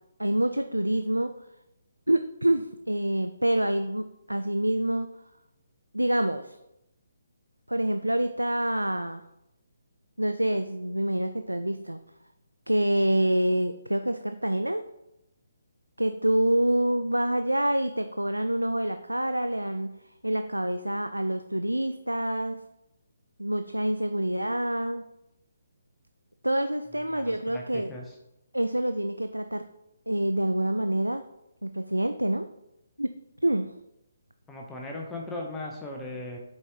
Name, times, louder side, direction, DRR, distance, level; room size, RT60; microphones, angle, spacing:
voice 1, 0.2-1.3 2.1-5.1 5.9-6.6 7.7-9.2 10.2-12.0 12.7-14.9 16.0-19.9 20.2-22.6 23.4-25.1 26.4-27.9 28.5-29.7 30.1-31.2 31.6-32.5 33.0-33.1 33.4-33.7, right 1 dB, 85° right, 9 dB, 0.3 m, -26 dB
voice 2, 27.0-28.1 34.5-36.4, left 2 dB, 10° left, -1 dB, 0.7 m, -38 dB
7.2 x 4.6 x 3.2 m, 0.87 s
figure-of-eight pair, 140°, 0 cm